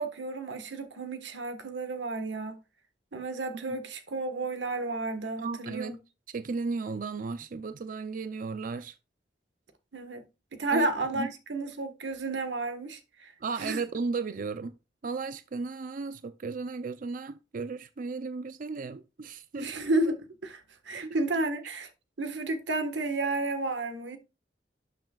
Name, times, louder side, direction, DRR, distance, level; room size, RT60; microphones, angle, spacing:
voice 1, 0.0-2.6 3.1-6.0 9.9-10.2 10.5-13.3 13.6-13.8 19.6-21.9 22.2-24.2, right 2 dB, 85° right, 1.4 m, -32 dB
voice 2, 5.4-5.9 6.3-9.0 10.7-10.9 11.1-11.3 13.4-14.7 15.0-19.7 20.9-21.2, right 4 dB, 50° right, 0.5 m, -35 dB
12.0 x 6.7 x 2.3 m
head